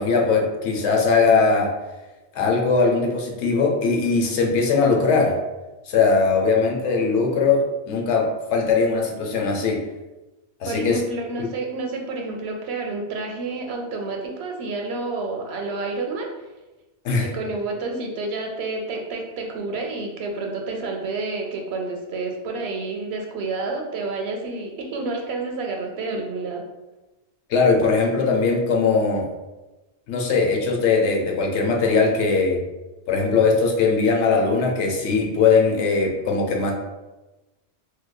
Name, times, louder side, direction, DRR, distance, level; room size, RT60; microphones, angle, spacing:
voice 1, 0.0-1.7 2.3-5.4 5.9-9.8 10.6-11.0 11.4-11.5 17.0-17.3 27.5-29.3 30.1-32.6 33.1-36.7, left 4 dB, 80° left, 1 dB, 0.9 m, -20 dB
voice 2, 10.6-16.3 17.2-26.6, right 3 dB, 70° right, 2 dB, 0.8 m, -29 dB
4.6 x 2.2 x 2.2 m, 1.1 s
omnidirectional pair, 1.1 m